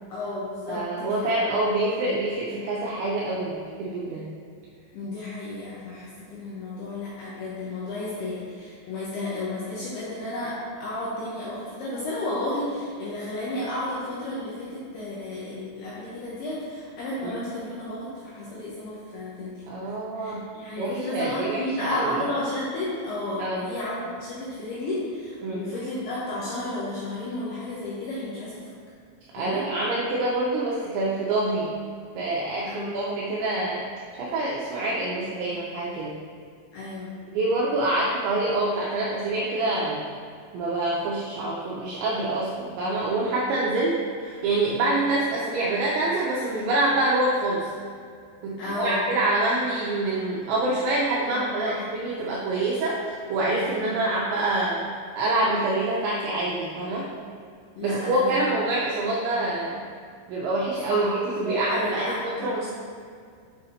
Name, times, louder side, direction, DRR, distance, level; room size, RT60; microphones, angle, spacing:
voice 1, 0.1-1.3 4.9-19.5 20.2-28.6 29.4-29.7 32.6-33.2 36.7-37.2 48.6-49.0 51.3-51.8 53.6-53.8 57.8-58.4 60.9-61.1 61.4-62.7, left 2 dB, 85° left, -8 dB, 2.3 m, -32 dB
voice 2, 0.7-4.3 17.2-17.4 19.7-20.5 20.8-22.2 23.4-23.7 25.4-25.6 29.3-31.7 32.2-33.9 34.2-36.2 37.3-40.0 40.5-47.7 48.4-57.1 57.8-59.8 60.3-62.7, right 2 dB, 80° right, -4 dB, 2.6 m, -26 dB
7.1 x 6.3 x 2.7 m, 2.2 s
omnidirectional pair, 5.8 m